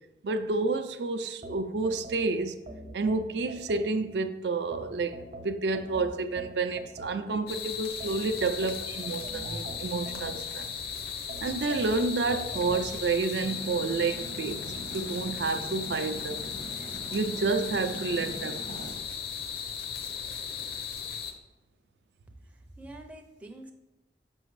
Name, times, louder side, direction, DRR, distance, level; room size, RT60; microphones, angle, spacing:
voice 1, 0.2-2.6 2.9-10.7 11.4-16.4 17.1-18.9, right 3 dB, 75° right, 0.4 m, -30 dB
sound 1, 1.4-4.2 4.7-7.5 8.0-10.8 11.3-12.9, right 1 dB, 50° right, 0.8 m, -44 dB
sound 2, 7.5-21.3, left 7 dB, 60° left, 0.7 m, -37 dB
sound 3, 13.4-19.0, equal, 85° left, 1.6 m, -43 dB
voice 2, 22.5-23.7, right 1 dB, 10° right, 0.4 m, -46 dB
6.1 x 5.7 x 3.1 m
head